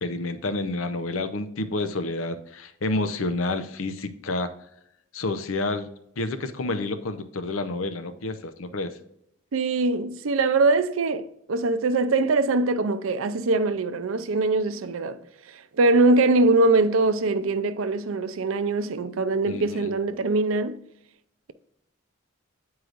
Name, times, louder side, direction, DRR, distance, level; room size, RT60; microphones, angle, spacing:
voice 1, 0.0-4.5 5.1-5.9 6.2-9.0 19.5-19.9, left 2 dB, 75° left, 0.6 m, -29 dB
voice 2, 9.5-20.8, right 3 dB, 75° right, 0.5 m, -23 dB
9.2 x 4.7 x 2.5 m
head